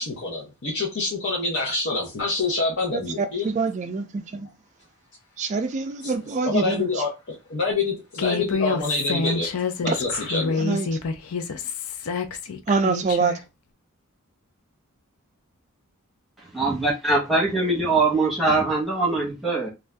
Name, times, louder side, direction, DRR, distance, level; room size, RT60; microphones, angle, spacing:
voice 1, 0.0-3.5 6.0-6.1 6.5-9.5 9.8-10.7, left 3 dB, 55° left, 0.8 m, -26 dB
voice 2, 2.9-4.5 5.4-6.9 10.6-10.9 12.7-13.4, right 4 dB, 35° right, 0.3 m, -25 dB
Human voice, 8.2-13.4, left 4 dB, 80° left, 0.5 m, -27 dB
voice 3, 16.5-19.7, right 3 dB, ahead, 1.1 m, -22 dB
2.6 x 2.3 x 3.3 m
head